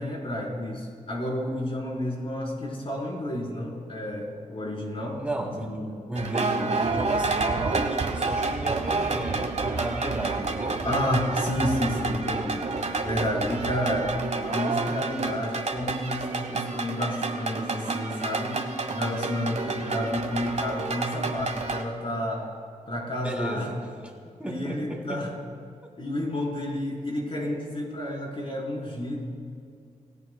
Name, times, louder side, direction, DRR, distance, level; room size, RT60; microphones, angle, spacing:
voice 1, 0.0-5.2 5.5-5.9 10.8-18.6 18.9-22.5 22.9-23.7 24.4-25.3 26.0-29.2, left 1 dB, 40° left, -3 dB, 4.4 m, -30 dB
voice 2, 5.2-5.8 6.1-10.8 19.6-19.9 23.2-23.8 24.4-25.2 25.8-25.9, right 1 dB, 10° right, -2 dB, 3.2 m, -33 dB
sound 1, 6.2-21.8, right 3 dB, 55° right, 1.3 m, -29 dB
28.0 x 17.0 x 2.3 m, 2.3 s
wide cardioid pair, 105°, 14 cm